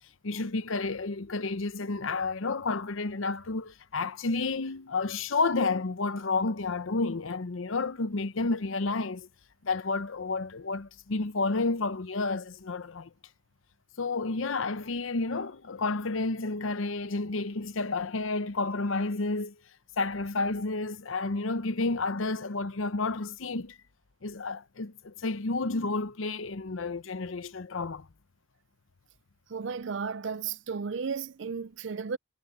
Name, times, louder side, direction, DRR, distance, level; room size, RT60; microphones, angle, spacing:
voice 1, 0.2-9.3 9.6-13.1 14.0-19.5 20.0-23.8 24.2-28.1, left 3 dB, 80° left, 0.8 m, -31 dB
voice 2, 29.5-32.2, right 5 dB, 65° right, 0.5 m, -34 dB
head